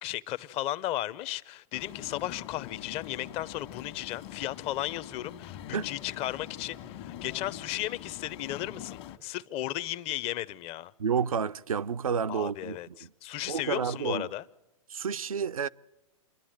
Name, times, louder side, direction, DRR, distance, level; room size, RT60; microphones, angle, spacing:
voice 1, 0.0-10.9 12.3-14.4, left 14 dB, 35° left, 0.7 m, -35 dB
sound 1, 1.7-9.2, left 11 dB, 50° left, 1.6 m, -44 dB
voice 2, 11.0-13.1 13.5-14.3 14.9-15.7, right 6 dB, 85° right, 0.6 m, -30 dB
28.5 x 11.5 x 9.0 m
hypercardioid pair, 115°, 18 cm